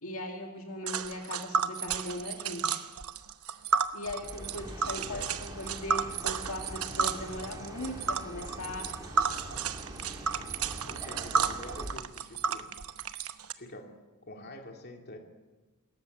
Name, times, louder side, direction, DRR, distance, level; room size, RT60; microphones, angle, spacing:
voice 1, 0.0-2.8 3.9-8.9, left 1 dB, 65° left, 2 dB, 2.3 m, -39 dB
Tick, 0.9-13.5, right 6 dB, 75° right, 1.0 m, -32 dB
Chirp tweet, 4.1-11.9, right 1 dB, 15° right, 2.7 m, -44 dB
voice 2, 4.9-5.3 10.8-12.7 13.6-14.0 14.3-15.2, left 1 dB, 45° left, 2 dB, 2.7 m, -46 dB
25.5 x 14.0 x 8.1 m, 1.2 s
head